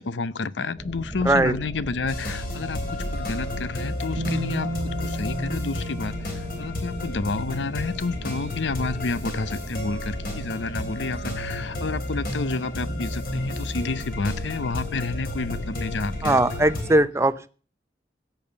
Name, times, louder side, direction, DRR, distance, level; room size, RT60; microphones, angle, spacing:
voice 1, 0.0-16.4 16.7-16.9, left 3 dB, 85° left, 0.7 m, -30 dB
sound 1, 0.7-16.7, right 1 dB, 25° left, 2.1 m, -36 dB
sound 2, 2.1-17.0, left 2 dB, 50° left, 3.4 m, -33 dB
Bass guitar, 4.2-8.1 9.2-9.3, right 1 dB, 75° right, 1.2 m, -34 dB
voice 2, 16.2-17.5, right 1 dB, 15° right, 0.7 m, -20 dB
16.0 x 7.0 x 7.0 m
head